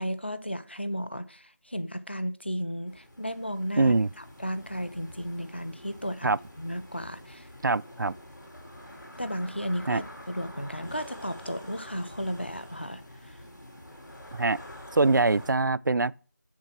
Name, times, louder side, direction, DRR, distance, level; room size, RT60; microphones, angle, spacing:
voice 1, 0.0-6.3 6.6-7.5 9.2-13.4, equal, 35° left, 0.6 m, -34 dB
sound 1, 2.9-15.5, left 1 dB, 85° left, 4.0 m, -47 dB
voice 2, 3.8-4.1 6.2-6.4 7.6-8.1 9.9-10.0 14.3-14.6 14.9-16.2, right 3 dB, 90° right, 0.4 m, -23 dB
7.4 x 6.6 x 6.0 m
figure-of-eight pair, 180°, 10 cm